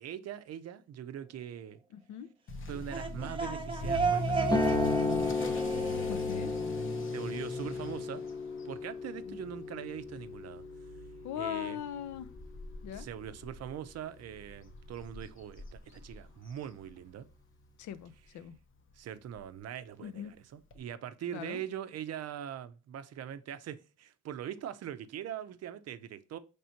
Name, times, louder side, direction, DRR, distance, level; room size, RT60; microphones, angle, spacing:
voice 1, 0.0-1.8 2.7-5.5 7.1-8.2 8.6-10.6 11.4-11.8 13.0-17.3 18.9-26.4, right 10 dB, 55° right, 0.5 m, -42 dB
voice 2, 1.9-2.3 6.1-6.5 9.3-9.4 11.2-12.3 12.8-13.1 17.8-18.6 20.0-20.3 21.3-21.6, left 10 dB, 75° left, 0.5 m, -40 dB
Motor vehicle (road) / Accelerating revving vroom, 2.5-17.3 17.6-18.0 18.5-18.6 18.9-19.0 19.3-19.4 20.7-20.8, left 1 dB, 45° left, 0.8 m, -42 dB
sound 1, 2.7-7.4, right 5 dB, 15° right, 0.7 m, -34 dB
sound 2, 4.4-12.5, left 4 dB, 15° left, 0.4 m, -34 dB
4.3 x 3.3 x 2.7 m
cardioid pair, 90°, 30 cm